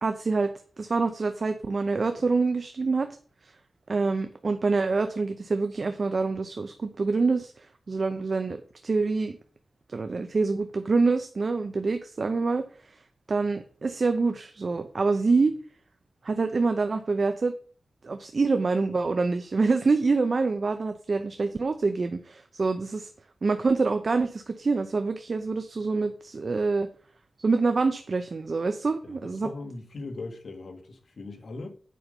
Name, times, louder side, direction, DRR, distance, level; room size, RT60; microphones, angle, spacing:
voice 1, 0.0-3.1 3.9-9.4 9.9-12.7 13.3-15.5 16.2-17.5 18.0-23.1 23.4-26.9 27.4-29.5, right 4 dB, 50° right, 0.6 m, -26 dB
voice 2, 29.0-31.7, left 3 dB, 70° left, 1.6 m, -39 dB
8.5 x 5.4 x 5.3 m
wide cardioid pair, 125°, 0 cm